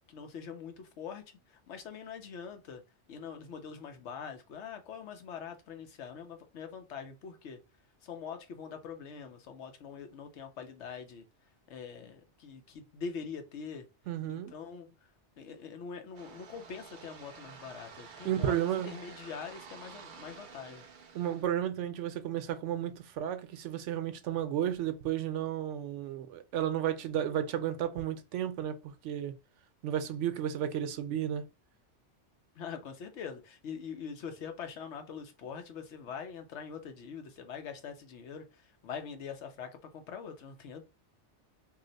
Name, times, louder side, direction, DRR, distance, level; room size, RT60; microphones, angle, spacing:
voice 1, 0.1-2.8 3.1-7.6 8.0-11.2 11.7-13.9 14.3-15.1 15.4-20.8 32.5-40.8, left 6 dB, 75° left, 1.0 m, -43 dB
voice 2, 14.1-14.5 18.2-19.0 21.1-29.3 29.8-31.4, right 10 dB, 80° right, 0.9 m, -33 dB
sound 1, 16.1-21.4, right 5 dB, 60° right, 0.6 m, -50 dB
2.8 x 2.0 x 3.9 m
omnidirectional pair, 1.2 m